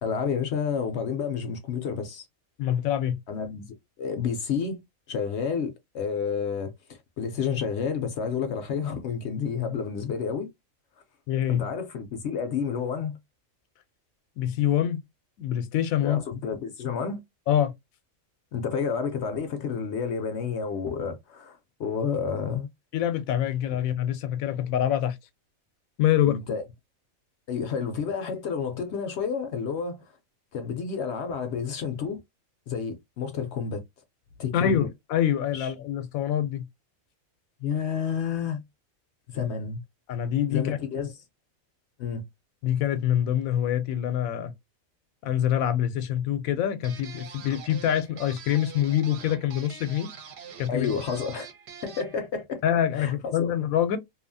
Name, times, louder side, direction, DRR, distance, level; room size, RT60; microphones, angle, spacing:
voice 1, 0.0-2.2 3.3-3.7 4.0-4.8 5.1-10.5 11.5-13.2 16.0-17.2 18.5-22.7 26.3-26.6 27.5-30.0 30.5-32.2 32.7-33.8 34.4-34.8 35.5-35.7 37.6-38.6 39.3-39.8 40.5-41.1 42.0-42.2 50.7-51.5 51.8-52.6 52.9-53.5, left 6 dB, 65° left, 0.7 m, -30 dB
voice 2, 2.6-3.2 11.3-11.7 14.4-15.0 15.4-16.2 17.5-17.7 22.9-25.2 26.0-26.4 34.5-36.7 40.1-40.8 42.6-44.5 45.2-50.1 50.6-50.9 52.6-54.0, left 10 dB, 90° left, 1.0 m, -25 dB
sound 1, 46.8-52.2, right 6 dB, 60° right, 0.9 m, -45 dB
2.7 x 2.3 x 2.5 m
omnidirectional pair, 1.4 m